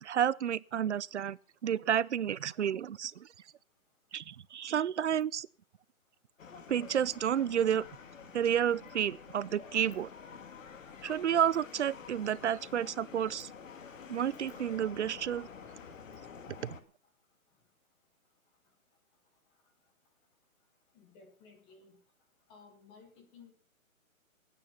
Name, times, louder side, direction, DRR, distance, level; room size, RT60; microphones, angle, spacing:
voice 1, 0.0-1.4 1.6-3.3 4.1-5.5 6.7-7.8 8.3-10.1 11.0-13.5 14.1-15.5 16.6-16.8, right 9 dB, 55° right, 0.6 m, -30 dB
sound 1, 6.4-16.8, left 6 dB, 65° left, 2.2 m, -49 dB
voice 2, 20.9-22.0 22.5-23.5, left 5 dB, 5° left, 0.7 m, -57 dB
18.0 x 9.3 x 5.7 m
hypercardioid pair, 165°, 42 cm